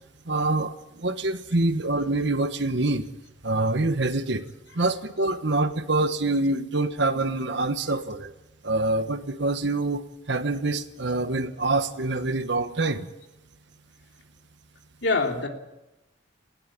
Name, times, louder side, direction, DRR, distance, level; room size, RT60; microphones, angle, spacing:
voice 1, 0.2-3.0 3.4-4.4 4.7-8.3 8.6-13.1, right 2 dB, 60° right, 10 dB, 1.3 m, -25 dB
voice 2, 15.0-15.5, left 3 dB, 65° left, 2 dB, 3.1 m, -26 dB
19.0 x 17.0 x 8.8 m, 0.95 s
head